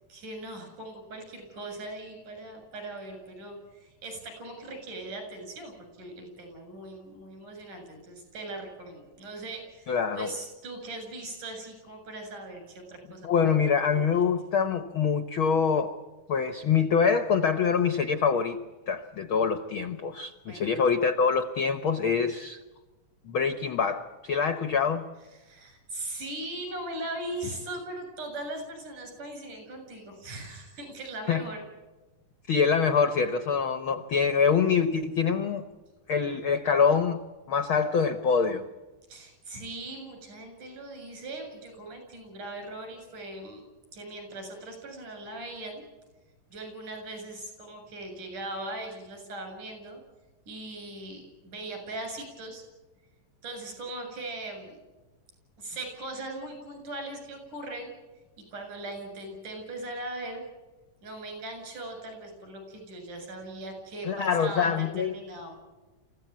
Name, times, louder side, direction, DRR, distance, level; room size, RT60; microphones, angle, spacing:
voice 1, 0.1-14.2 20.5-20.9 25.4-31.6 39.1-43.6 43.9-45.8 46.5-50.0 50.5-52.6 53.4-54.8 55.6-57.9 58.5-60.5 61.0-65.6, right 2 dB, 70° right, 4 dB, 8.7 m, -39 dB
voice 2, 9.9-10.3 13.2-15.9 16.3-18.6 18.9-22.6 23.2-25.0 31.3-31.4 32.5-35.7 36.1-37.2 37.5-38.7 64.0-65.2, left 6 dB, 80° left, 10 dB, 1.1 m, -25 dB
27.5 x 16.0 x 9.3 m, 1.2 s
omnidirectional pair, 3.8 m